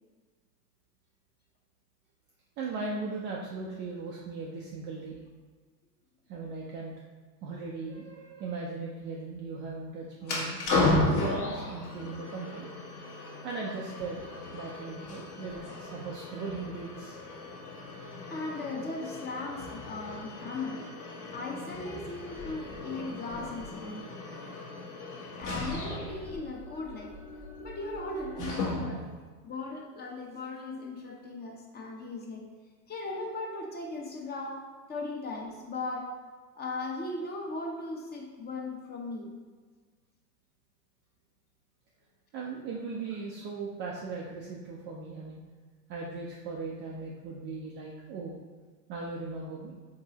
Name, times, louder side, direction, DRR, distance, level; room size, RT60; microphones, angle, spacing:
voice 1, 2.6-5.2 6.3-6.9 7.4-10.6 11.1-12.7 13.4-17.2 28.4-28.5 28.9-29.0 42.3-45.4 45.9-48.4 48.9-49.7, right 4 dB, 25° right, -3 dB, 0.4 m, -38 dB
sound 1, 10.2-29.1, left 2 dB, 40° left, 1.2 m, -35 dB
voice 2, 18.0-20.9 21.3-24.1 25.4-27.2 27.6-29.0 29.4-32.5 32.9-36.1 36.6-39.3, left 2 dB, 20° left, 0 dB, 0.7 m, -38 dB
4.6 x 3.9 x 2.9 m, 1.4 s
hypercardioid pair, 100°, 50 cm